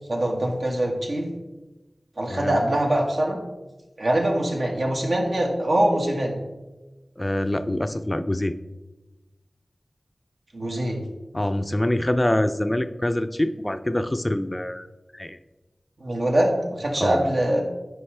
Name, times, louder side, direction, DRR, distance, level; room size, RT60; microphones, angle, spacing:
voice 1, 0.1-1.3 2.2-3.4 4.0-6.3 10.5-11.0 16.0-17.6, right 1 dB, 75° right, 0 dB, 1.5 m, -23 dB
voice 2, 7.2-8.5 11.3-14.9 15.1-15.4 17.0-17.3, left 1 dB, 25° left, 10 dB, 0.4 m, -25 dB
9.8 x 5.0 x 3.3 m, 1.1 s
wide cardioid pair, 55°, 0 cm